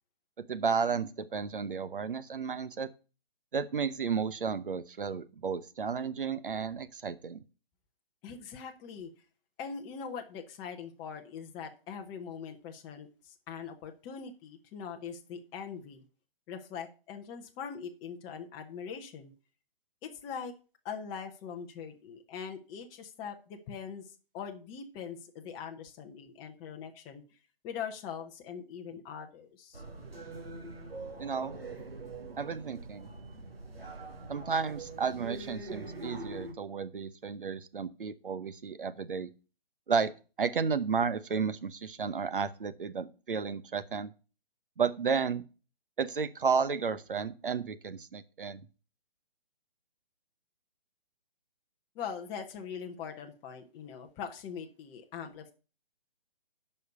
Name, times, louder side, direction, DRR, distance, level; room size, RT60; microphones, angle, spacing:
voice 1, 0.4-2.9 3.5-7.4 31.2-31.5 32.4-33.1 34.3-39.3 39.9-40.1 40.4-44.1 44.8-45.4 46.0-48.6, right 5 dB, 65° right, 13 dB, 0.9 m, -32 dB
voice 2, 8.2-9.1 9.6-16.0 16.5-19.3 20.0-20.5 20.8-24.0 24.3-27.2 27.6-29.8 51.9-55.5, left 7 dB, 15° left, 4 dB, 0.8 m, -42 dB
sound 1, 29.7-36.5, right 2 dB, 85° right, 2.7 m, -43 dB
9.2 x 5.6 x 6.6 m, 0.34 s
figure-of-eight pair, 135°, 29 cm